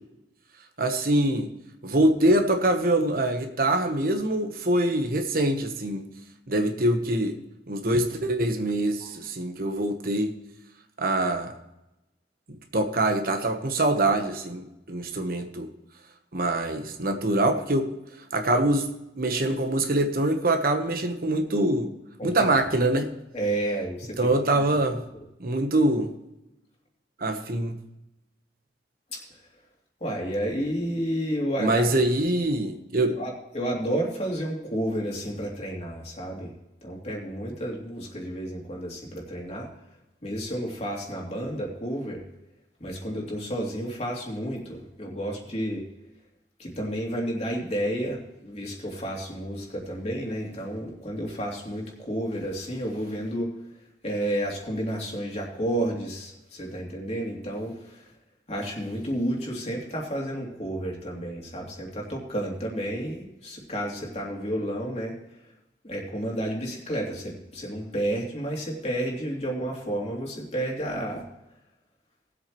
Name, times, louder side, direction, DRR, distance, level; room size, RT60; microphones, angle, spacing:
voice 1, 0.8-1.5 1.8-6.0 6.5-7.3 7.7-10.3 11.0-11.5 12.7-15.7 16.3-17.9 18.3-18.9 19.2-21.9 22.2-23.1 24.2-25.0 25.4-26.1 27.2-27.8 31.6-33.2, right 1 dB, 55° right, 6 dB, 1.1 m, -24 dB
voice 2, 22.2-22.5 23.3-24.2 29.1-29.2 30.0-31.9 33.2-36.5 36.8-39.7 40.2-42.2 42.8-45.8 46.6-53.5 54.0-58.0 58.5-65.1 65.8-71.3, right 1 dB, 35° left, -2 dB, 2.9 m, -31 dB
19.0 x 8.0 x 3.1 m, 0.93 s
head